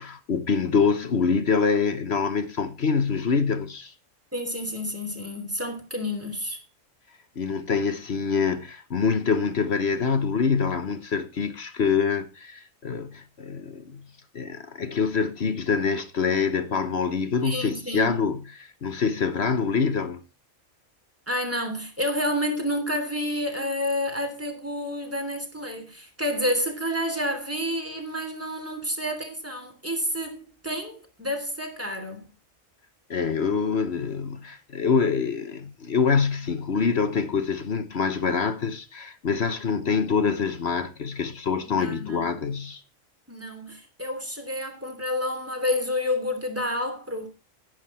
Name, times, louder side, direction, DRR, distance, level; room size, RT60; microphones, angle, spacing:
voice 1, 0.0-3.9 7.4-14.0 14.3-20.2 33.1-42.8, left 5 dB, 55° left, 1.3 m, -25 dB
voice 2, 4.3-6.6 17.4-18.2 21.3-32.2 41.6-42.3 43.3-47.3, left 1 dB, 10° right, 3.1 m, -29 dB
11.5 x 11.0 x 4.4 m
omnidirectional pair, 1.4 m